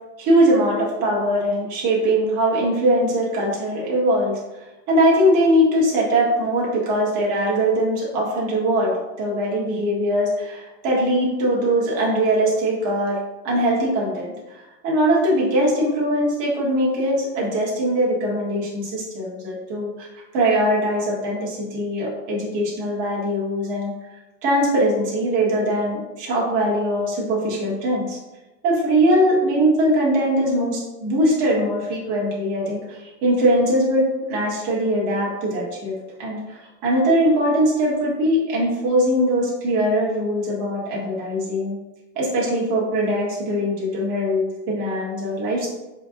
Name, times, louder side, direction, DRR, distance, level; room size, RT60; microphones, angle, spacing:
voice 1, 0.2-4.4 4.9-8.9 9.2-13.2 13.4-14.3 14.8-20.1 20.3-23.9 24.4-28.2 28.6-35.9 36.2-41.8 42.1-45.7, right 1 dB, 40° right, -4 dB, 1.4 m, -21 dB
4.6 x 3.5 x 2.5 m, 1.1 s
supercardioid pair, 155°, 48 cm